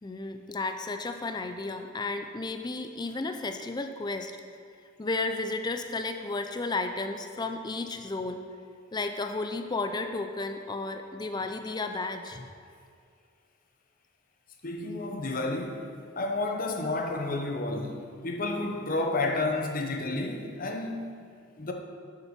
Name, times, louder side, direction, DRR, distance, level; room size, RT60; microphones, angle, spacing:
voice 1, 0.0-4.3 5.0-8.4 8.9-12.5, left 3 dB, 20° left, 6 dB, 0.4 m, -33 dB
voice 2, 14.6-15.9 16.2-21.1 21.6-21.7, left 2 dB, 45° left, 3 dB, 0.9 m, -31 dB
7.1 x 6.7 x 5.9 m, 2.2 s
head